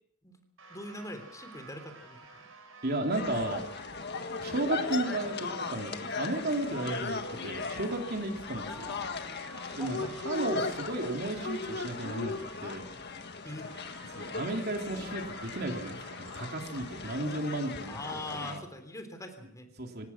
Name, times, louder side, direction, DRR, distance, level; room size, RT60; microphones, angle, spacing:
sound 1, 0.6-17.4, right 4 dB, 85° right, 5.7 m, -52 dB
voice 1, 0.7-2.4 8.6-9.5 9.8-10.1 13.4-13.7 17.9-19.7, left 1 dB, 15° left, 7 dB, 3.4 m, -43 dB
voice 2, 2.8-3.6 4.4-8.9 9.7-10.0 10.2-12.3 12.6-12.8 14.1-18.6 19.8-20.1, right 2 dB, 55° right, 3 dB, 3.4 m, -34 dB
sound 2, 3.1-18.6, left 4 dB, 55° left, 1.7 m, -38 dB
25.5 x 19.0 x 6.0 m, 0.70 s
head